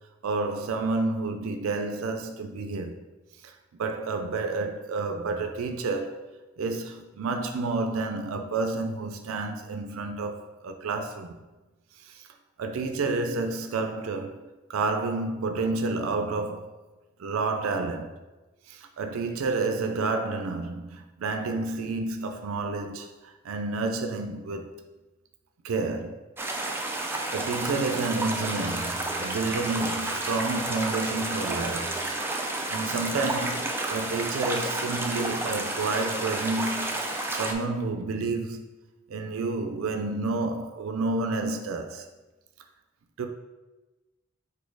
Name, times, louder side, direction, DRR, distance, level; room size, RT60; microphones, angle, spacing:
voice 1, 0.2-3.0 3.4-6.3 6.6-11.3 12.0-12.2 12.6-16.7 17.2-18.2 18.7-24.7 25.6-26.2 27.3-32.0 32.7-38.6 39.1-42.1 43.2-43.3, right 3 dB, 85° right, 0.4 m, -30 dB
sound 1, 26.4-37.5, right 2 dB, 10° right, 0.4 m, -31 dB
4.2 x 2.7 x 4.6 m
head